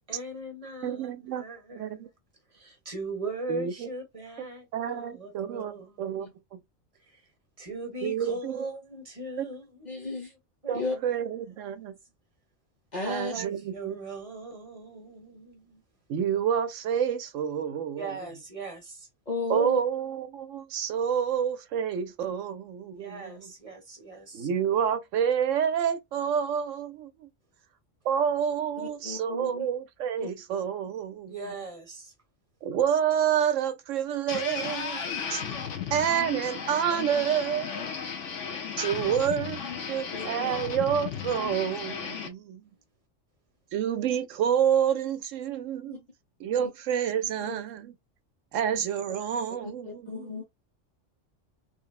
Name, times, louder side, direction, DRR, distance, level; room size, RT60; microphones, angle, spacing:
voice 1, 0.1-2.1 2.5-6.3 7.1-7.2 7.6-9.9 10.6-11.9 13.3-15.8 18.0-19.1 22.9-24.5 31.3-32.1 39.7-40.7 40.9-41.0 41.4-41.5, right 2 dB, 30° right, 1.1 m, -40 dB
voice 2, 0.8-1.4 1.7-2.1 3.5-3.9 4.7-6.6 8.0-8.6 9.4-9.5 10.7-11.9 13.0-14.0 16.1-18.1 19.5-23.5 24.3-27.3 28.0-31.4 32.6-35.4 35.9-37.8 38.8-39.6 39.9-42.6 43.7-46.0 46.4-47.9 48.5-50.4, right 8 dB, 80° right, 1.0 m, -28 dB
voice 3, 9.8-10.3 10.7-11.0 12.9-13.3 19.3-19.8 28.8-29.7 30.2-30.3 39.0-39.1 40.1-40.5 45.9-46.0 46.6-46.7 47.4-47.6 49.6-50.4, left 3 dB, 40° left, 0.9 m, -35 dB
sound 1, 34.3-42.3, left 6 dB, 75° left, 1.0 m, -35 dB
3.4 x 2.0 x 2.3 m
omnidirectional pair, 1.3 m